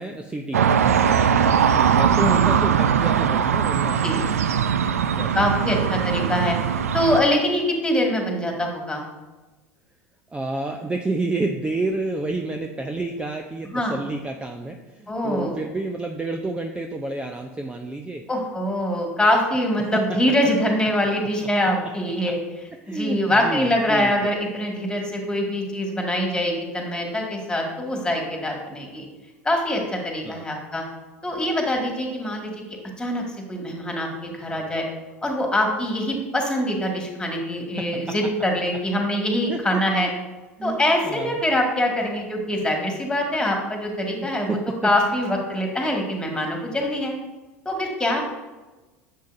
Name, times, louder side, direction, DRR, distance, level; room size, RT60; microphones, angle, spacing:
voice 1, 0.0-4.0 5.2-5.5 10.3-18.2 19.8-20.2 22.2-22.3 22.8-24.1 30.2-30.5 37.8-38.3 39.5-40.1 40.6-41.4 44.2-44.9, right 2 dB, 15° right, 4 dB, 0.6 m, -30 dB
sound 1, 0.5-7.2, right 8 dB, 80° right, 0.4 m, -20 dB
voice 2, 5.3-6.6 6.9-9.0 13.7-13.9 15.1-15.5 18.3-22.4 22.9-29.1 29.4-30.8 31.2-32.5 33.0-33.2 33.5-34.8 35.2-40.1 40.6-44.6 44.8-47.1 47.7-48.3, left 1 dB, 10° left, 1 dB, 2.0 m, -24 dB
10.0 x 7.3 x 2.7 m, 1.2 s
hypercardioid pair, 80°, 8 cm